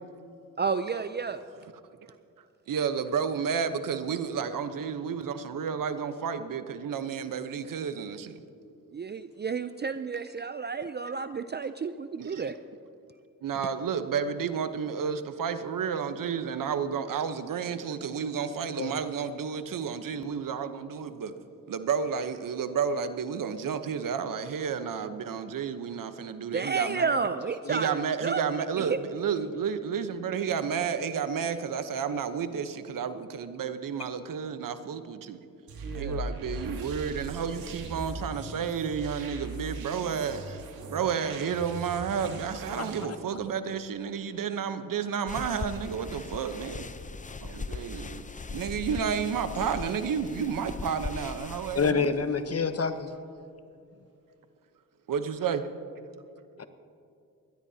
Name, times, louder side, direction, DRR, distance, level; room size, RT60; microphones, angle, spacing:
voice 1, 0.6-1.4 8.9-12.6 26.4-28.4 28.8-29.0 35.8-36.2, right 5 dB, 30° right, 11 dB, 0.5 m, -31 dB
voice 2, 2.7-8.4 12.2-12.4 13.4-21.3 21.7-27.2 27.7-35.4 35.9-40.6 40.9-46.8 47.4-48.2 48.5-52.1 55.1-55.6, right 7 dB, 65° right, 10 dB, 1.0 m, -31 dB
sound 1, 35.7-43.0, right 2 dB, 85° right, 2.0 m, -39 dB
sound 2, 45.3-51.9, left 4 dB, 20° left, 0.6 m, -39 dB
voice 3, 51.7-53.1 56.6-56.7, left 5 dB, 45° left, 10 dB, 1.1 m, -27 dB
21.5 x 16.5 x 2.8 m, 2.5 s
cardioid pair, 60°, 35 cm